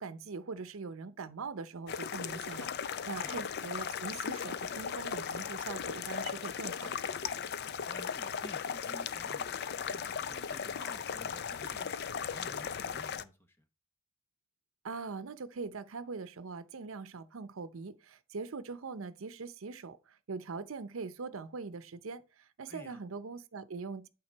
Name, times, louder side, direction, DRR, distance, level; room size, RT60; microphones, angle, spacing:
voice 1, 0.0-6.9 14.8-24.1, right 4 dB, 90° right, 0.6 m, -42 dB
sound 1, 1.9-13.2, left 7 dB, 55° left, 0.4 m, -37 dB
voice 2, 7.9-12.0 12.3-13.6 22.7-23.0, equal, 10° left, 1.0 m, -52 dB
8.8 x 3.6 x 4.5 m
head